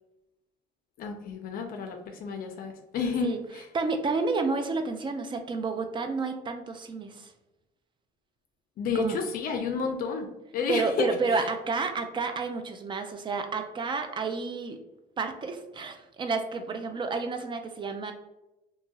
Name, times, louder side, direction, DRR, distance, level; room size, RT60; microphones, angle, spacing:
voice 1, 1.0-3.7 8.8-11.1, left 5 dB, 60° left, 4 dB, 0.4 m, -31 dB
voice 2, 3.7-7.3 8.9-9.2 10.7-14.8 15.2-18.1, right 4 dB, 30° right, 6 dB, 0.4 m, -30 dB
2.8 x 2.7 x 2.3 m, 0.94 s
cardioid pair, 110°, 17 cm